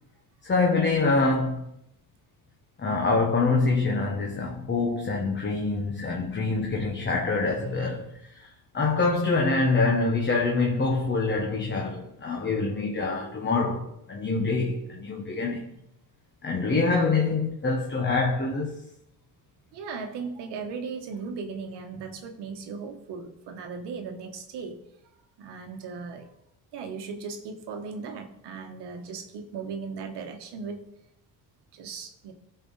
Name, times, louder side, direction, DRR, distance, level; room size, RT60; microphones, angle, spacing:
voice 1, 0.4-1.6 2.8-8.5 8.7-15.7 16.4-18.8, left 3 dB, 25° left, 1.2 m, -25 dB
voice 2, 19.7-24.8 25.4-26.3 26.7-30.8 31.7-32.3, right 5 dB, 70° right, 1.2 m, -37 dB
13.5 x 4.6 x 3.9 m
cardioid pair, 90°, 42 cm